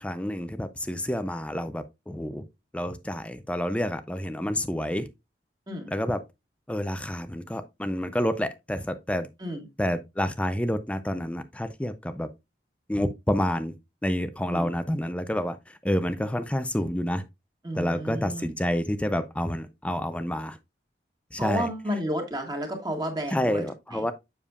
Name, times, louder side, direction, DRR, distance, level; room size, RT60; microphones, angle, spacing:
voice 1, 0.0-2.4 2.7-5.1 5.9-6.2 6.7-9.3 9.8-12.3 12.9-13.8 14.0-17.2 17.7-20.6 21.3-21.7 23.3-24.1, equal, 5° left, 0.4 m, -29 dB
voice 2, 17.6-18.5 21.4-23.7 23.9-24.0, equal, 25° right, 1.8 m, -31 dB
7.3 x 6.7 x 2.4 m
head